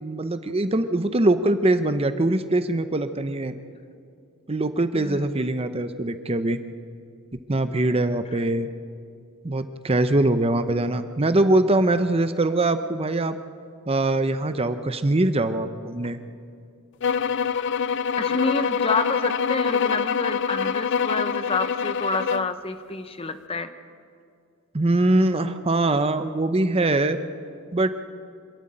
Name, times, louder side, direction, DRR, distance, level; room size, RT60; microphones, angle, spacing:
voice 1, 0.0-3.5 4.5-6.6 7.5-8.7 9.4-13.4 13.9-16.2 24.7-27.2 27.7-27.9, right 2 dB, 25° right, 10 dB, 0.7 m, -22 dB
voice 2, 5.0-5.3 18.1-23.7, left 3 dB, 25° left, 10 dB, 0.8 m, -28 dB
sound 1, 17.0-22.5, left 6 dB, 55° left, 0.5 m, -25 dB
25.5 x 12.5 x 8.9 m, 2.3 s
head